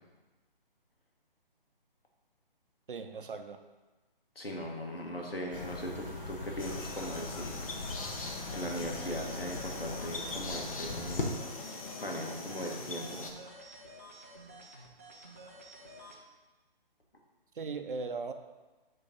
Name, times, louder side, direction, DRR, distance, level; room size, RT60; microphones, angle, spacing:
voice 1, 2.9-3.6 17.5-18.3, right 4 dB, 65° right, 7 dB, 0.7 m, -38 dB
voice 2, 4.3-8.1 8.5-11.3 12.0-13.3, equal, 80° left, 0 dB, 1.6 m, -39 dB
sound 1, 5.5-11.2, left 3 dB, 65° left, 1.3 m, -41 dB
sound 2, 6.6-13.3, left 3 dB, 40° left, 0.7 m, -42 dB
sound 3, 7.8-16.2, right 1 dB, 15° right, 0.4 m, -51 dB
7.0 x 3.2 x 5.3 m, 1.2 s
figure-of-eight pair, 145°, 29 cm